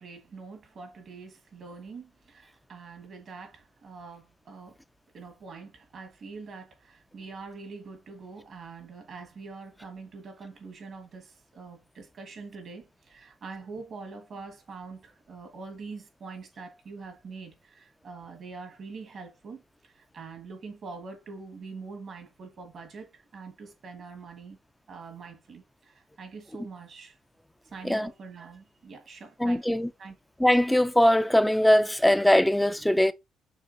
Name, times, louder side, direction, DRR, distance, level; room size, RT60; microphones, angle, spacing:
voice 1, 0.0-4.8 5.1-24.6 24.9-27.2 27.6-30.1, right 4 dB, 55° right, 1.4 m, -44 dB
voice 2, 29.4-29.9 30.4-33.1, left 1 dB, 5° left, 0.3 m, -21 dB
6.3 x 2.4 x 2.5 m
cardioid pair, 90°, 0 cm